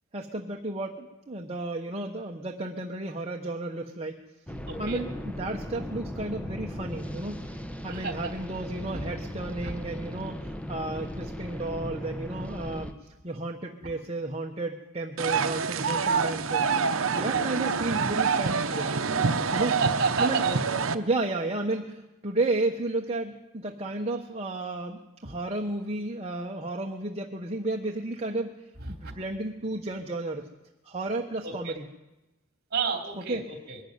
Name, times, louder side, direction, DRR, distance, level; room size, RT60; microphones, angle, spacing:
voice 1, 0.1-4.2 4.8-7.4 7.8-13.0 13.2-18.9 19.5-19.8 20.2-20.4 20.9-28.5 28.9-30.4 30.8-31.9 33.2-33.5, right 2 dB, 30° right, 1 dB, 1.1 m, -32 dB
sound 1, 4.5-12.9, equal, 5° left, 0.9 m, -37 dB
voice 2, 4.7-5.0 7.9-8.3 8.9-9.1 9.6-9.7 17.1-17.4 19.7-20.6 25.2-25.3 28.9-29.1 31.4-31.8 32.7-33.8, right 4 dB, 45° right, 5 dB, 3.0 m, -31 dB
sound 2, 15.2-20.9, right 5 dB, 65° right, 0.9 m, -26 dB
22.0 x 12.5 x 9.5 m, 1.0 s
head